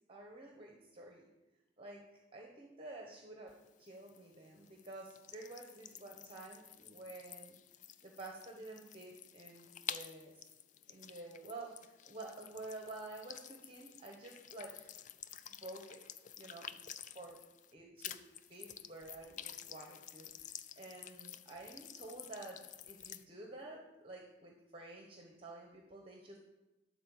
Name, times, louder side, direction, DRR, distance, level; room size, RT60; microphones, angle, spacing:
voice 1, 0.1-1.3 1.8-2.1 2.3-7.6 8.0-10.5 10.9-14.9 15.5-16.0 16.4-16.7 17.1-17.4 17.7-18.2 18.4-26.4, right 2 dB, 30° right, 1 dB, 1.1 m, -50 dB
sound 1, 3.5-17.7 18.0-23.2, left 9 dB, 45° left, 0.4 m, -51 dB
12.0 x 4.2 x 7.1 m, 1.0 s
head